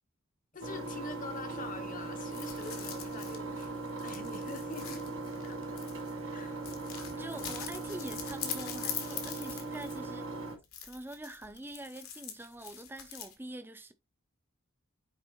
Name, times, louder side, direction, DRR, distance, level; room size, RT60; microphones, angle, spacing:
voice 1, 0.5-5.1 5.4-5.9 6.3-6.7, left 3 dB, 35° left, 0.9 m, -45 dB
Engine, 0.6-10.6, right 3 dB, 75° right, 2.8 m, -39 dB
sound 1, 2.3-6.2 6.6-10.2 10.6-13.3, left 8 dB, 80° left, 1.8 m, -43 dB
voice 2, 7.1-10.3 10.8-13.9, right 1 dB, 10° right, 0.5 m, -45 dB
9.5 x 3.6 x 3.0 m
head